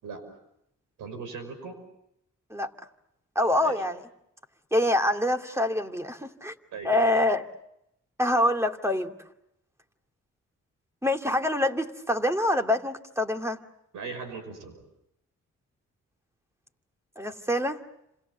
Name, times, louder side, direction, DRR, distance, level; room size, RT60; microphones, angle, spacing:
voice 1, 1.0-1.8 3.6-3.8 6.7-7.1 13.9-14.8, right 5 dB, 90° right, 10 dB, 6.0 m, -38 dB
voice 2, 3.4-4.0 4.7-6.5 6.8-7.5 8.2-9.1 11.0-13.6 17.2-17.8, left 1 dB, 10° right, 4 dB, 2.5 m, -25 dB
29.5 x 27.0 x 6.8 m, 0.80 s
supercardioid pair, 55°, 31 cm